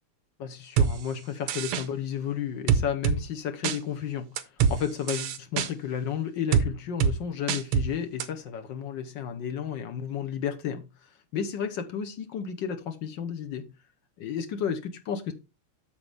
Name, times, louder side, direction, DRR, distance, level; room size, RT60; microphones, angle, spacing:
voice 1, 0.4-13.7 14.2-15.3, left 8 dB, 65° left, 1.4 m, -32 dB
sound 1, 0.8-0.9 1.5-1.8 2.7-3.2 3.6-3.8 4.4-4.8 5.1-5.7 6.5-6.7 7.0-7.1 7.5-7.9 8.2-8.3, right 7 dB, 90° right, 1.8 m, -23 dB
8.2 x 7.0 x 3.4 m
omnidirectional pair, 2.4 m